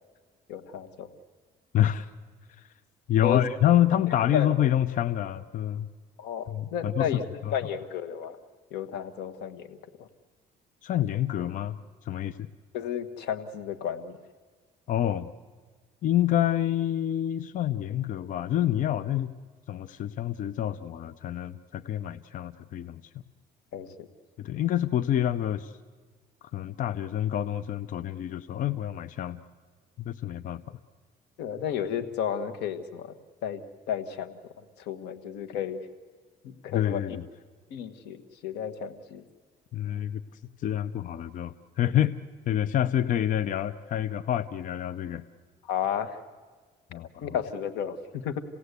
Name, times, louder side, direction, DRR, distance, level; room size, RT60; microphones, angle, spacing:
voice 1, 0.5-1.1 3.2-3.4 4.3-4.5 6.2-7.3 7.5-8.4 8.7-10.1 12.7-14.2 23.7-24.1 31.4-33.1 33.4-33.6 33.9-34.4 34.8-35.8 36.4-37.2 37.7-39.2 45.7-46.2 47.2-48.4, left 8 dB, 85° left, 11 dB, 1.3 m, -32 dB
voice 2, 1.7-2.1 2.6-2.7 3.1-5.9 6.5-7.1 10.8-11.8 12.0-12.4 14.9-15.3 16.0-19.3 19.7-23.0 24.4-25.7 26.5-29.4 30.1-30.8 36.7-37.2 39.7-40.2 40.6-42.2 42.5-45.2 46.9-47.4, left 11 dB, 50° left, 13 dB, 0.6 m, -27 dB
28.5 x 17.5 x 8.2 m, 1.5 s
cardioid pair, 110°, 17 cm